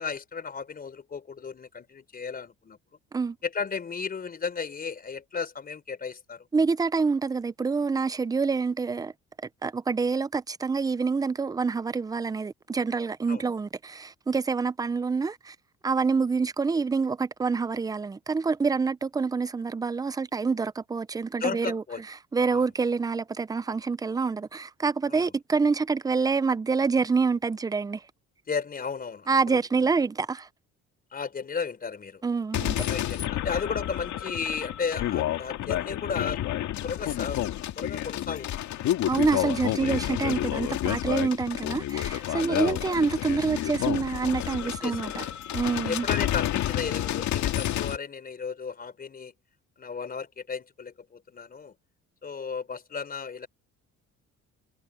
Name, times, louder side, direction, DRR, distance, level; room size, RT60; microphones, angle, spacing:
voice 1, 0.0-2.8 3.4-6.5 13.3-13.4 21.4-22.0 22.5-22.7 25.1-25.3 28.5-29.6 31.1-32.2 32.9-36.4 36.8-37.4 37.8-38.6 39.8-40.0 42.3-42.9 44.8-45.4 45.8-49.3 49.8-51.7 52.2-53.5, left 5 dB, 30° left, 4.1 m, -34 dB
voice 2, 6.5-9.1 9.6-15.6 15.8-21.8 22.3-28.0 29.3-30.5 32.2-32.9 39.1-45.3 45.5-46.1, right 4 dB, 15° right, 0.5 m, -27 dB
sound 1, 32.5-48.0, left 13 dB, 70° left, 2.2 m, -30 dB
cardioid pair, 130°, 30 cm